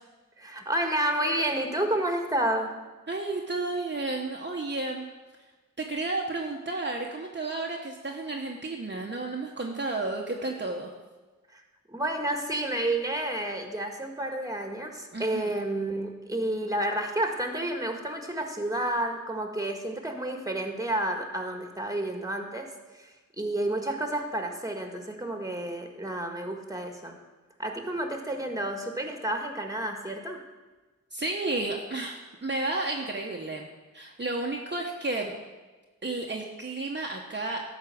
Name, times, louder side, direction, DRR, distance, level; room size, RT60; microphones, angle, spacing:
voice 1, 0.4-2.8 11.5-11.6 11.9-22.7 22.9-27.2 27.6-30.4, right 1 dB, 10° right, 4 dB, 1.7 m, -30 dB
voice 2, 3.1-5.0 5.8-10.9 15.1-15.5 31.1-33.7 33.9-35.3 36.0-37.6, right 2 dB, 35° right, 0 dB, 1.1 m, -32 dB
12.5 x 4.7 x 7.7 m, 1.2 s
wide cardioid pair, 60°, 32 cm